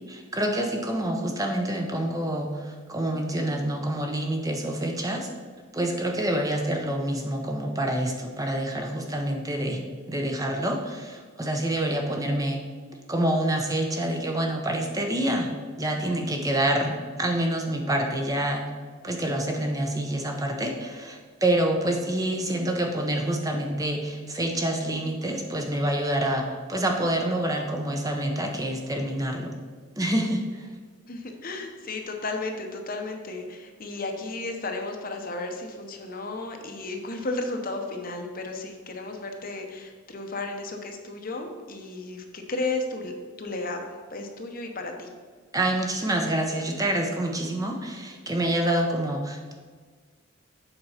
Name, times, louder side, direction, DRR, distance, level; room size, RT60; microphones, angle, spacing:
voice 1, 0.1-5.3 5.7-9.8 10.1-12.6 13.1-18.7 19.0-29.6 30.0-30.7 45.5-49.5, right 1 dB, 15° right, 2 dB, 0.7 m, -27 dB
voice 2, 31.1-43.1 43.4-45.1, left 2 dB, 40° left, 4 dB, 0.8 m, -34 dB
8.0 x 4.6 x 5.7 m, 1.5 s
head